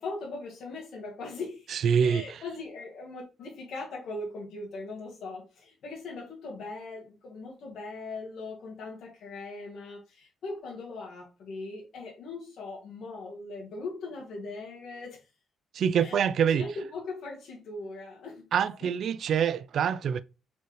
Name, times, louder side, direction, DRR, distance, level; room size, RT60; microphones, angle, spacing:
voice 1, 0.0-15.2 16.0-18.5 18.8-18.9, left 3 dB, 65° left, 1.6 m, -40 dB
voice 2, 1.7-2.4 15.7-16.7 18.5-20.2, right 7 dB, 65° right, 0.3 m, -25 dB
4.3 x 3.9 x 3.2 m
cardioid pair, 90°, 0 cm